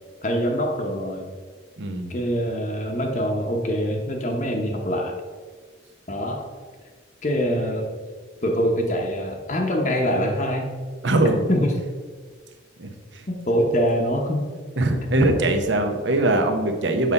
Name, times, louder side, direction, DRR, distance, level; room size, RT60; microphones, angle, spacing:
voice 1, 0.2-1.3 2.1-5.1 6.1-6.5 7.2-8.0 8.4-10.7 11.5-11.7 13.3-14.5 15.1-15.3, equal, 40° left, 1 dB, 0.8 m, -24 dB
voice 2, 1.8-2.1 11.0-11.4 12.8-13.2 14.8-17.1, right 2 dB, 70° right, 6 dB, 0.9 m, -22 dB
7.4 x 5.7 x 4.1 m, 1.6 s
head